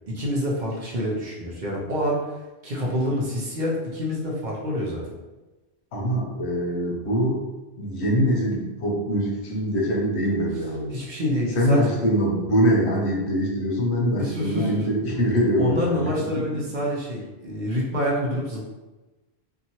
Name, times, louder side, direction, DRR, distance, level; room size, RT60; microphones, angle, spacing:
voice 1, 0.1-2.2 2.6-5.0 10.9-11.9 14.1-14.7 15.6-18.6, equal, 50° right, -3 dB, 0.7 m, -27 dB
voice 2, 5.9-7.4 7.8-10.9 11.5-16.8, equal, 80° left, -1 dB, 1.0 m, -23 dB
2.8 x 2.4 x 2.7 m, 1.1 s
omnidirectional pair, 1.1 m